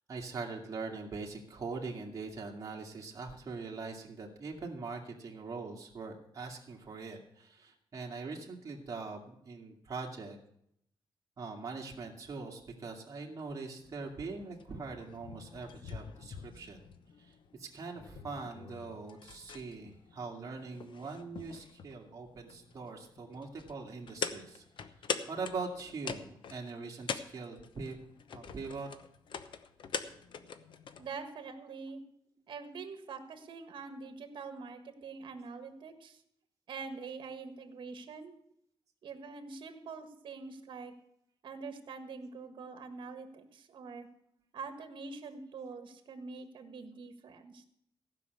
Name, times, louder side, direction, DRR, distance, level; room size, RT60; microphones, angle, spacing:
voice 1, 0.1-10.4 11.4-16.8 17.2-24.6 25.3-28.0 28.3-28.9, right 4 dB, 40° right, -1 dB, 2.1 m, -42 dB
sound 1, 13.8-31.1, left 6 dB, 65° left, 0.9 m, -44 dB
voice 2, 31.0-32.0 32.5-36.2 36.7-38.3 39.0-40.9 41.4-44.1 44.5-47.6, right 4 dB, 60° right, 8 dB, 1.6 m, -45 dB
15.5 x 5.9 x 7.9 m, 0.72 s
wide cardioid pair, 135°, 9 cm